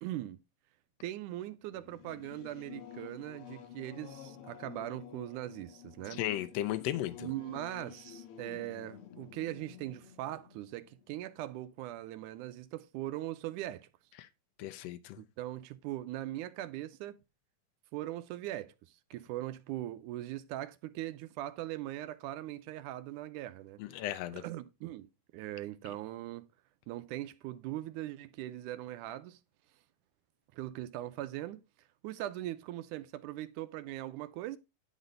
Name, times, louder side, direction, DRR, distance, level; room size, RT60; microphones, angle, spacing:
voice 1, 0.0-0.4 1.0-6.2 7.2-13.9 15.2-17.2 17.9-18.7 19.1-23.8 24.3-25.1 25.3-26.4 26.9-29.4 30.5-31.6 32.0-34.6, right 14 dB, 85° right, 2.1 m, -40 dB
Singing / Musical instrument, 1.7-11.8, left 10 dB, 65° left, 1.5 m, -51 dB
voice 2, 6.1-7.3 14.2-14.3 14.6-15.2 23.8-24.4, left 13 dB, 85° left, 1.5 m, -35 dB
10.5 x 4.1 x 5.2 m
omnidirectional pair, 3.6 m